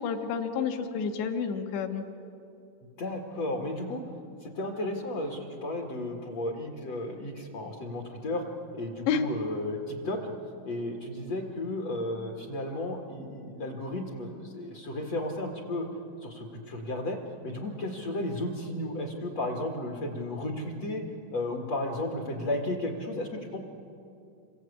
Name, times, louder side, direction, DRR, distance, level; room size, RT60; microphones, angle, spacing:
voice 1, 0.0-2.0 9.1-9.2, left 6 dB, 70° left, 5 dB, 3.6 m, -29 dB
voice 2, 3.0-4.0 4.4-8.4 8.7-10.2 10.6-15.9 16.2-17.2 17.4-21.0 21.3-23.6, left 1 dB, 50° left, 2 dB, 2.2 m, -33 dB
28.0 x 24.5 x 8.5 m, 2.7 s
omnidirectional pair, 5.7 m